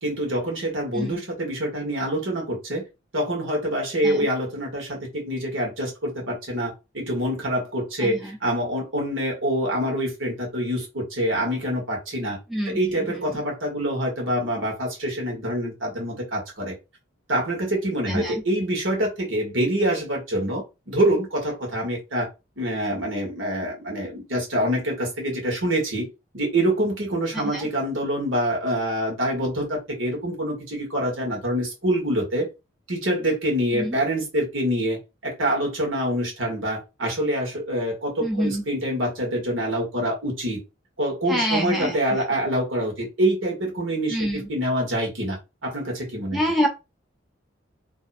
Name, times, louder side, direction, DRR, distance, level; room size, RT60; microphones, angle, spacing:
voice 1, 0.0-2.8 3.1-12.4 12.7-16.8 17.3-22.3 22.6-26.1 26.3-32.5 32.9-35.0 35.2-40.6 41.0-46.4, right 1 dB, 75° right, 0 dB, 1.8 m, -26 dB
voice 2, 8.0-8.4 12.5-13.4 18.1-18.4 27.3-27.6 33.7-34.0 38.2-38.6 41.3-42.2 44.1-44.5 46.3-46.7, equal, ahead, -1 dB, 0.8 m, -27 dB
3.4 x 2.3 x 4.2 m, 0.26 s
head